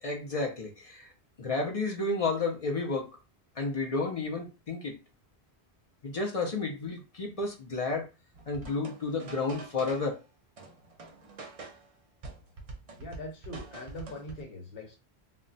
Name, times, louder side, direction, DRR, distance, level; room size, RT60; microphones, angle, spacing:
voice 1, 0.0-1.1 1.4-3.1 3.6-5.0 6.0-8.0 8.5-10.2, left 3 dB, 45° left, 1 dB, 0.5 m, -31 dB
sound 1, 8.3-10.2 10.6-11.9 12.2-14.4, right 3 dB, 45° right, 0.5 m, -46 dB
voice 2, 13.0-15.0, left 1 dB, 65° left, 1 dB, 1.1 m, -42 dB
2.1 x 2.1 x 3.8 m, 0.30 s
omnidirectional pair, 1.1 m